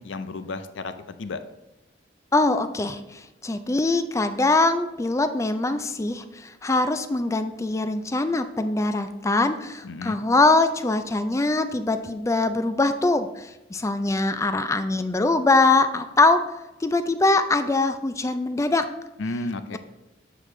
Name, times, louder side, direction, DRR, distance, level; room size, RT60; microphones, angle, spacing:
voice 1, 0.0-1.4 9.8-10.2 19.2-19.8, left 2 dB, 75° left, 11 dB, 0.5 m, -32 dB
voice 2, 2.3-16.4 16.8-18.8, left 2 dB, 15° left, 9 dB, 0.4 m, -22 dB
7.7 x 5.0 x 3.2 m, 0.97 s
head